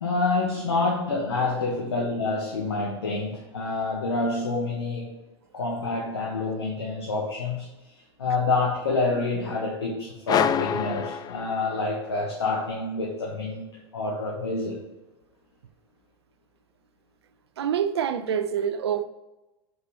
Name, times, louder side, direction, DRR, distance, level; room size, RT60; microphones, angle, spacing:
voice 1, 0.0-5.2 5.5-7.7 8.2-13.6 13.9-14.8, left 3 dB, 85° left, 1.5 m, -27 dB
sound 1, 10.3-12.0, left 9 dB, 30° left, 0.4 m, -26 dB
voice 2, 17.6-19.0, right 8 dB, 80° right, 0.6 m, -26 dB
5.9 x 5.5 x 4.7 m
hypercardioid pair, 85°, 13 cm